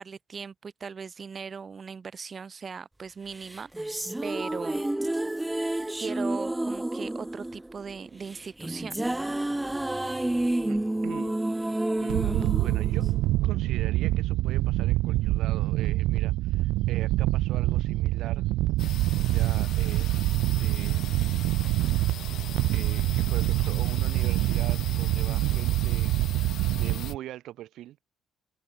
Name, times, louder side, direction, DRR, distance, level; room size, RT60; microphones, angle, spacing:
voice 1, 0.0-4.9 6.0-9.3, right 5 dB, 30° right, 2.6 m, -39 dB
sound 1, 3.4-13.8, right 1 dB, 5° right, 0.5 m, -30 dB
voice 2, 10.6-13.1 13.4-18.5 19.2-21.2 22.7-26.1 26.4-28.0, right 14 dB, 70° right, 5.1 m, -42 dB
sound 2, 12.1-27.2, right 17 dB, 85° right, 0.9 m, -25 dB
sound 3, 18.8-27.1, left 11 dB, 60° left, 2.0 m, -42 dB
cardioid pair, 135°, 0 cm